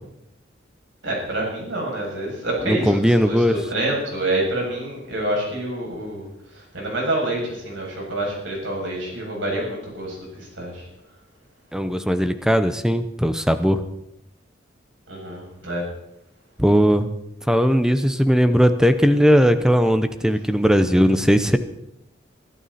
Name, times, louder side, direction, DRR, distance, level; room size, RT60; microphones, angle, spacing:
voice 1, 1.0-10.9 15.1-15.9, right 1 dB, 80° right, -2 dB, 7.4 m, -27 dB
voice 2, 2.6-3.6 11.7-13.8 16.6-17.1 17.5-21.6, equal, 5° right, 10 dB, 0.8 m, -18 dB
23.0 x 12.5 x 4.3 m, 0.83 s
head